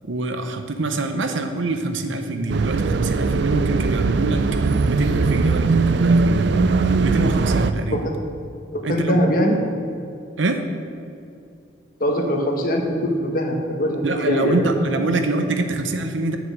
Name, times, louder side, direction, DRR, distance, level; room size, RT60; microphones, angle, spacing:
voice 1, 0.1-4.5 4.8-6.5 7.0-8.0 8.8-9.2 10.4-10.6 14.0-16.4, right 2 dB, 75° right, 7 dB, 0.8 m, -25 dB
sound 1, 2.5-7.7, right 4 dB, 60° right, 0.4 m, -20 dB
voice 2, 8.7-9.6 12.0-15.0, equal, 45° left, 2 dB, 1.2 m, -22 dB
7.3 x 6.3 x 7.4 m, 2.5 s
head